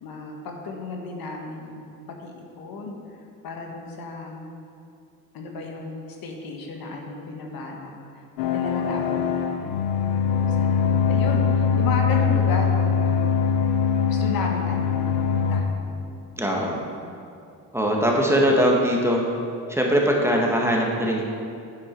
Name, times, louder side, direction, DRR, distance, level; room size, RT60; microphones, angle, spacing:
voice 1, 0.0-2.9 3.4-4.5 5.3-9.8 10.3-13.4 14.1-15.9, left 3 dB, 60° left, 1 dB, 1.5 m, -34 dB
sound 1, 8.4-15.6, left 6 dB, 90° left, 0.9 m, -22 dB
voice 2, 16.4-16.8 17.7-19.2 19.7-21.2, equal, 5° right, -1 dB, 1.7 m, -21 dB
8.6 x 8.3 x 4.6 m, 2.6 s
supercardioid pair, 70°, 40 cm